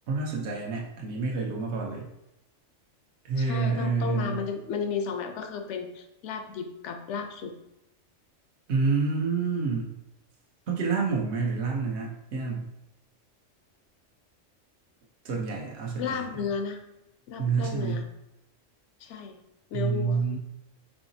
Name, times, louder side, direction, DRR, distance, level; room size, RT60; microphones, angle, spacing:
voice 1, 0.1-2.1 3.2-4.4 8.7-9.9 10.7-12.7 15.2-16.2 17.4-18.0 19.7-20.4, right 4 dB, 65° right, -2 dB, 1.1 m, -28 dB
voice 2, 3.4-7.5 16.0-16.8 17.3-18.0 19.0-19.4 19.7-20.3, left 6 dB, 70° left, 6 dB, 0.9 m, -33 dB
4.8 x 3.8 x 2.7 m, 0.87 s
omnidirectional pair, 1.3 m